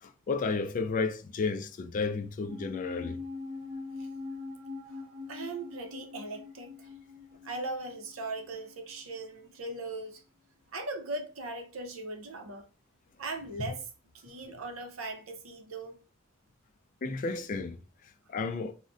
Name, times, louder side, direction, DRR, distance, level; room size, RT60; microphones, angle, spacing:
voice 1, 0.0-3.2 13.6-13.7 17.0-17.8 18.3-18.7, left 4 dB, 40° left, 0.3 m, -32 dB
sound 1, 2.4-9.0 9.2-9.3, left 4 dB, 35° right, 0.5 m, -43 dB
voice 2, 4.9-6.9 7.4-10.2 10.7-12.7 13.2-16.0, right 2 dB, 85° right, 0.6 m, -39 dB
2.5 x 2.1 x 3.5 m
head